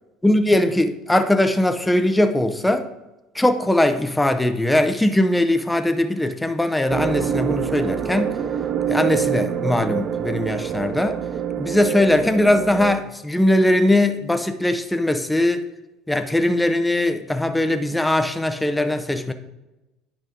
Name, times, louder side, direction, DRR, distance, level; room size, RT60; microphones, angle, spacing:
voice 1, 0.2-2.9 3.3-8.3 8.9-11.2 11.6-15.7 16.1-19.3, left 1 dB, 5° left, 0.6 m, -20 dB
sound 1, 6.9-12.9, right 8 dB, 40° right, 0.5 m, -26 dB
9.3 x 5.0 x 3.6 m
supercardioid pair, 95°, 0 cm